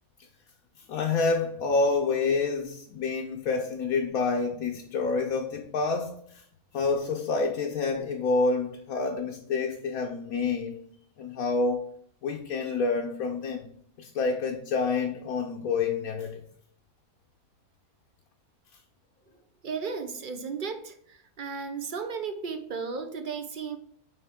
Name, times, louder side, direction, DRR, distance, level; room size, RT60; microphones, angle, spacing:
voice 1, 0.9-6.4 6.7-10.8 11.2-11.9 12.2-13.6 14.0-16.4, left 4 dB, 70° left, 1.1 m, -28 dB
voice 2, 19.6-23.8, right 5 dB, 55° right, 0.5 m, -35 dB
9.1 x 3.5 x 3.5 m
omnidirectional pair, 1.6 m